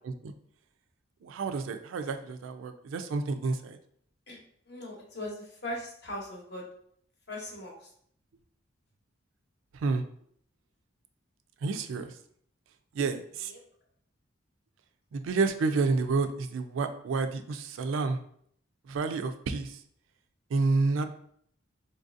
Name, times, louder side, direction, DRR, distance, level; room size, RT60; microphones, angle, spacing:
voice 1, 1.2-3.8 9.7-10.0 11.6-12.1 12.9-13.5 15.1-18.2 18.9-19.8 20.5-21.1, right 4 dB, 85° right, 8 dB, 0.3 m, -29 dB
voice 2, 4.7-6.6 7.3-7.9 13.5-13.6, left 1 dB, 55° left, -1 dB, 0.8 m, -39 dB
4.0 x 2.6 x 2.5 m, 0.64 s
head